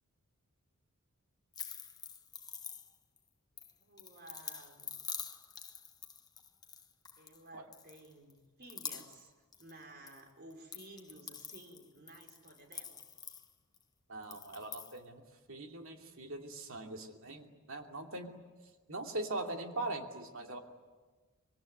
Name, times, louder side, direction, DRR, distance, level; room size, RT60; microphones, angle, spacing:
sound 1, 1.5-3.2 3.6-7.4 7.7-8.3 8.6-10.2 10.5-13.8 14.2-15.0, left 6 dB, 20° left, 1.2 m, -46 dB
voice 1, 3.8-4.9 7.2-13.1, right 1 dB, 45° right, 4 dB, 4.5 m, -55 dB
voice 2, 14.1-15.2 15.5-18.4 18.9-20.6, right 2 dB, 65° right, 3 dB, 2.9 m, -41 dB
25.5 x 24.0 x 9.4 m, 1.3 s
head